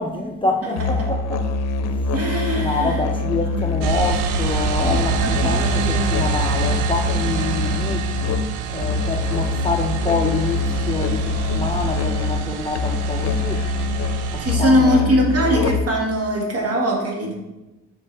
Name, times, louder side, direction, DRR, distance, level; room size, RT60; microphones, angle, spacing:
voice 1, 0.0-1.5 1.9-2.1 2.6-8.1 8.7-13.7 14.3-15.1, left 3 dB, 15° left, 0.5 m, -26 dB
voice 2, 0.6-1.1 2.1-3.0 3.4-3.6 4.8-6.1 14.4-17.3, equal, 50° right, 1.8 m, -22 dB
Musical instrument, 0.8-16.1, left 3 dB, 60° left, 0.6 m, -24 dB
sound 1, 3.8-14.5, right 10 dB, 90° right, 0.5 m, -27 dB
7.0 x 4.4 x 3.3 m
cardioid pair, 90°, 30 cm